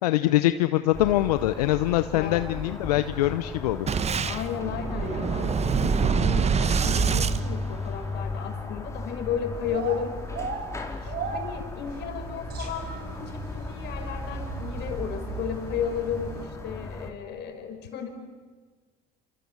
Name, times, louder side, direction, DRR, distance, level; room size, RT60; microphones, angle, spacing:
voice 1, 0.0-3.9, left 15 dB, 90° left, 12 dB, 0.7 m, -23 dB
sound 1, 0.9-17.1, left 3 dB, 15° left, 4.2 m, -37 dB
voice 2, 2.1-2.4 4.2-10.2 11.0-18.1, left 8 dB, 60° left, 5 dB, 5.1 m, -34 dB
Boom, 3.9-8.3, right 6 dB, 35° right, 1.4 m, -25 dB
sound 2, 9.6-16.5, right 5 dB, 55° right, 6.4 m, -37 dB
28.5 x 27.0 x 7.3 m, 1.5 s
hypercardioid pair, 75°, 20 cm